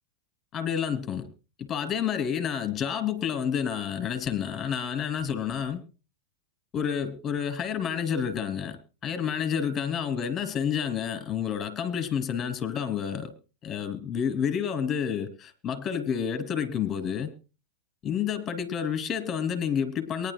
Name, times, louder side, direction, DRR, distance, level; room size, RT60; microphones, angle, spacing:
voice 1, 0.5-1.3 1.6-5.8 6.7-8.8 9.0-13.3 13.6-17.3 18.0-20.3, left 8 dB, 30° left, 2.9 m, -29 dB
23.0 x 11.0 x 2.3 m
hypercardioid pair, 110°, 0 cm